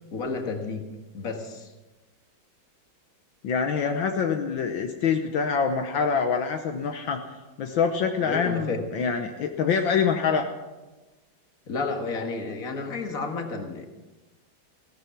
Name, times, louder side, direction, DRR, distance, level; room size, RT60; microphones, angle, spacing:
voice 1, 0.1-0.9 1.1-1.7 8.2-8.8 11.7-13.9, left 3 dB, 45° left, 4 dB, 2.1 m, -31 dB
voice 2, 3.4-7.2 7.6-10.4, left 6 dB, 70° left, 4 dB, 1.7 m, -25 dB
16.5 x 13.0 x 6.0 m, 1.1 s
omnidirectional pair, 2.2 m